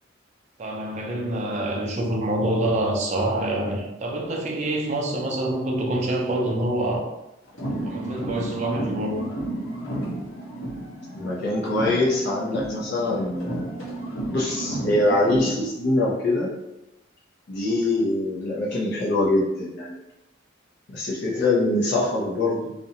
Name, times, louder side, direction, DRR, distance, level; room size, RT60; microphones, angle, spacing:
voice 1, 0.6-7.1 7.8-9.3, right 1 dB, 35° right, 0 dB, 0.4 m, -26 dB
sound 1, 7.5-11.4 11.6-15.6, right 1 dB, 80° left, 0.8 m, -32 dB
voice 2, 11.1-13.7 14.3-16.5 17.5-19.9 20.9-22.7, left 2 dB, 60° left, -7 dB, 0.5 m, -24 dB
2.4 x 2.1 x 2.7 m, 0.91 s
head